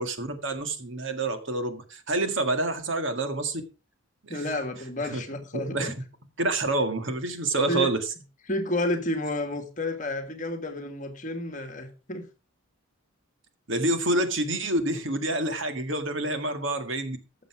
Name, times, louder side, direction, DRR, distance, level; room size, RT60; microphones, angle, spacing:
voice 1, 0.0-3.6 4.2-4.3 5.1-5.2 5.5-5.9 6.4-8.0 13.7-17.2, right 2 dB, 60° right, 1.9 m, -27 dB
voice 2, 4.3-5.9 7.7-7.9 8.5-12.3, left 1 dB, 35° left, 1.8 m, -30 dB
14.0 x 7.0 x 4.8 m
head